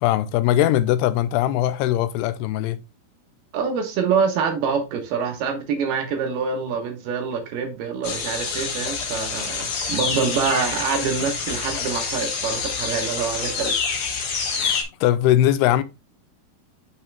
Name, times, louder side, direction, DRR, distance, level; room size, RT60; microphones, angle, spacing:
voice 1, 0.0-2.8 14.6-15.8, left 12 dB, 85° left, 2.6 m, -20 dB
voice 2, 3.5-13.8, right 6 dB, 75° right, 3.2 m, -25 dB
sound 1, 8.0-14.8, left 5 dB, 70° left, 1.3 m, -27 dB
6.8 x 5.7 x 3.4 m
omnidirectional pair, 4.6 m